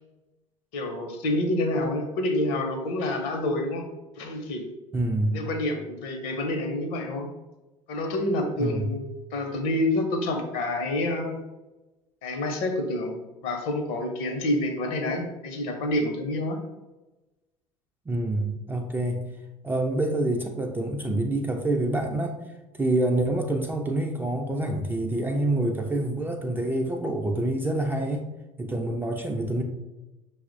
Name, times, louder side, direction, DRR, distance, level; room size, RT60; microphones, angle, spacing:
voice 1, 0.7-3.9 4.2-4.7 5.3-7.3 7.9-9.1 9.3-11.4 12.2-13.2 13.4-16.6, left 1 dB, 55° left, 5 dB, 0.7 m, -28 dB
voice 2, 4.9-5.4 8.6-8.9 18.1-19.3 19.6-22.4 22.7-28.3 28.6-29.6, right 1 dB, 10° right, 3 dB, 0.4 m, -27 dB
5.8 x 2.0 x 2.6 m, 1.0 s
figure-of-eight pair, 65°, 18 cm